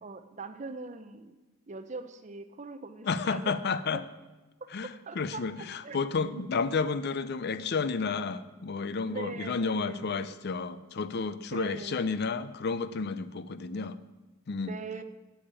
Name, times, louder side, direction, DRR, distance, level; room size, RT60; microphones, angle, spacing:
voice 1, 0.0-1.3 1.7-3.6 3.9-4.0 4.6-4.7 5.1-5.4 5.8-6.0 6.3-6.6 9.0-10.4 11.4-12.2 14.5-15.0, right 3 dB, 35° right, 9 dB, 0.6 m, -42 dB
voice 2, 3.0-4.0 4.7-14.0 14.5-14.7, left 4 dB, 50° left, 14 dB, 0.5 m, -31 dB
8.6 x 7.2 x 8.8 m, 1.2 s
head